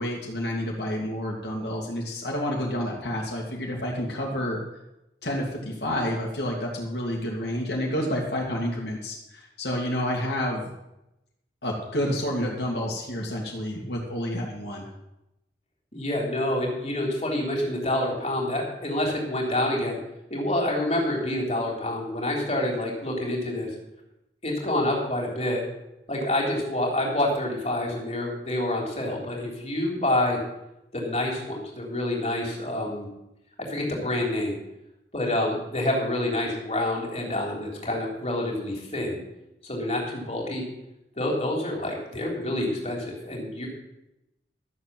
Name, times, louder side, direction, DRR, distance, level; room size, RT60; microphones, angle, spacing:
voice 1, 0.0-4.6 5.2-10.7 11.6-14.8, equal, 65° left, -2 dB, 2.4 m, -29 dB
voice 2, 15.9-20.0 20.3-23.7 24.4-25.6 26.1-30.4 30.9-33.1 33.6-34.5 35.1-39.2 39.6-40.6 41.2-43.7, left 1 dB, 35° left, -1 dB, 3.5 m, -27 dB
13.5 x 7.2 x 7.7 m, 0.90 s
head